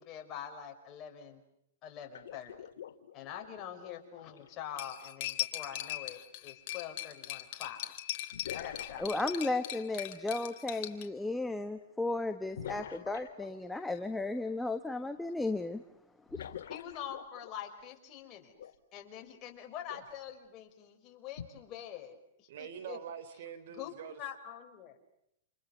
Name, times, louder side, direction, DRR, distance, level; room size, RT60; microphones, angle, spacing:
voice 1, 0.0-1.4 1.8-2.6 3.1-7.8 8.5-9.3 16.7-18.5 18.9-23.0 23.7-24.9, left 9 dB, 35° left, 3 dB, 5.4 m, -45 dB
sound 1, 2.1-4.8 6.7-6.8 8.3-10.1 12.6-13.9 16.3-17.8 18.6-18.7 19.9-20.1 21.4-21.5, left 9 dB, 80° left, 2.0 m, -46 dB
Cutlery silverware, 4.8-11.0, left 14 dB, 50° left, 3.3 m, -39 dB
voice 2, 9.0-15.8 16.3-16.5, left 2 dB, 5° left, 8 dB, 1.3 m, -34 dB
voice 3, 22.5-24.2, right 8 dB, 65° right, 13 dB, 3.6 m, -44 dB
29.5 x 28.5 x 6.7 m, 0.76 s
hypercardioid pair, 135°, 0 cm